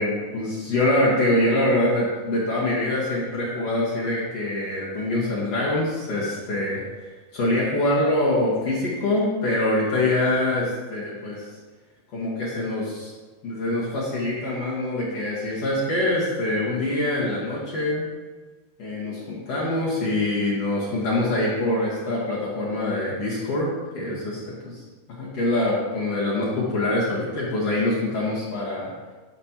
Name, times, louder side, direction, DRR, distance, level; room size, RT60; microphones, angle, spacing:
voice 1, 0.0-6.8 7.3-11.4 12.1-13.1 13.4-18.0 18.8-23.7 23.9-24.4 25.1-28.9, left 1 dB, 60° left, -7 dB, 1.7 m, -24 dB
13.5 x 5.3 x 2.9 m, 1.3 s
omnidirectional pair, 5.2 m